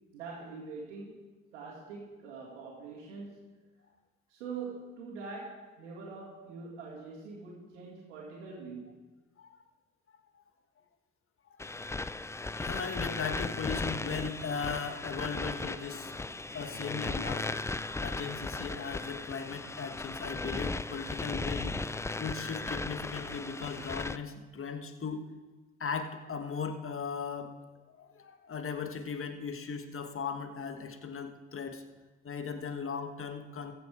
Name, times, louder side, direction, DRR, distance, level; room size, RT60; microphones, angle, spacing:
voice 1, 0.1-1.1 1.5-3.3 4.3-9.0, right 4 dB, 85° right, -7 dB, 2.1 m, -43 dB
sound 1, 11.6-24.2, left 3 dB, 10° left, 0.3 m, -37 dB
voice 2, 12.5-16.1 16.5-17.5 18.0-21.8 22.2-25.3 25.8-27.5 27.9-31.8 32.2-33.7, left 5 dB, 40° left, 7 dB, 1.4 m, -38 dB
15.0 x 6.9 x 4.9 m, 1.2 s
hypercardioid pair, 50°, 34 cm